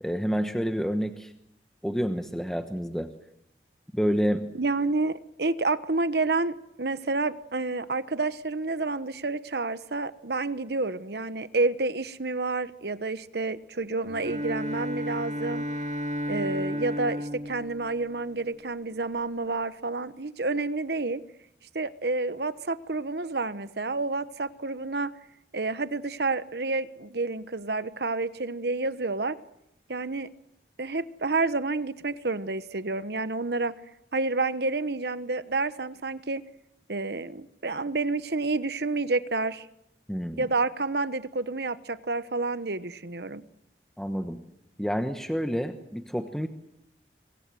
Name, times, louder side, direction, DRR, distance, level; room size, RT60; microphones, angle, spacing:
voice 1, 0.0-1.3 1.8-3.1 3.9-4.4 40.1-40.5 44.0-44.4 44.8-46.5, equal, 5° left, 6 dB, 1.1 m, -28 dB
voice 2, 4.5-15.7 16.3-21.2 21.7-25.1 25.5-29.4 29.9-30.3 30.8-33.7 34.1-36.4 36.9-39.7 40.4-43.4, right 3 dB, 70° right, 13 dB, 1.1 m, -29 dB
Bowed string instrument, 14.1-18.7, equal, 40° right, 2.1 m, -33 dB
26.5 x 22.5 x 7.7 m, 0.79 s
head